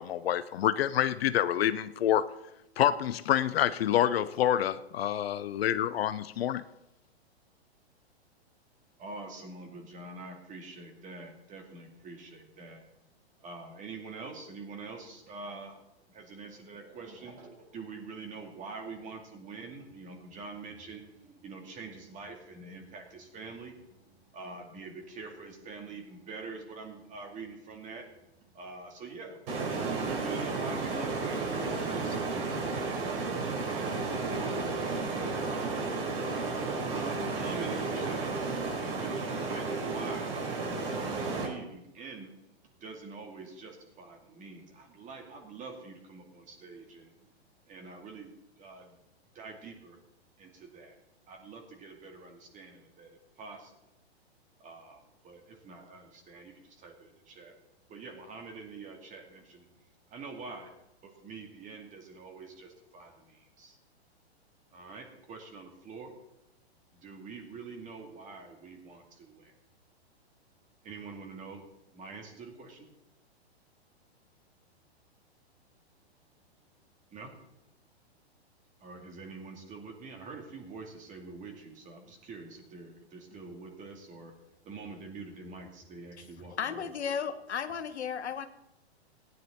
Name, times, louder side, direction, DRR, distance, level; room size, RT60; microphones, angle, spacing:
voice 1, 0.0-2.2 2.8-6.6, left 11 dB, 65° left, 13 dB, 0.6 m, -27 dB
voice 2, 9.0-12.8 13.4-15.7 16.1-23.7 24.3-28.0 28.6-29.4 29.9-32.5 36.9-38.3 38.7-40.3 41.0-42.3 42.8-43.7 44.0-47.1 47.7-48.3 48.6-48.8 49.4-50.0 50.4-50.9 51.3-53.1 53.4-53.6 54.6-55.0 55.2-55.4 55.6-56.5 56.8-56.9 57.3-57.5 57.9-59.6 60.1-60.7 61.2-62.7 62.9-63.1 63.6-63.7 64.7-66.1 67.0-69.3 70.9-71.6 71.9-72.8 77.1-77.3 78.8-84.3 84.7-86.9, right 4 dB, 25° right, 3 dB, 2.3 m, -45 dB
sound 1, 29.5-41.5, right 3 dB, 55° right, 4.6 m, -32 dB
voice 3, 86.6-88.5, left 7 dB, 85° left, 9 dB, 1.2 m, -34 dB
16.0 x 9.5 x 4.3 m, 0.87 s
hypercardioid pair, 130°, 33 cm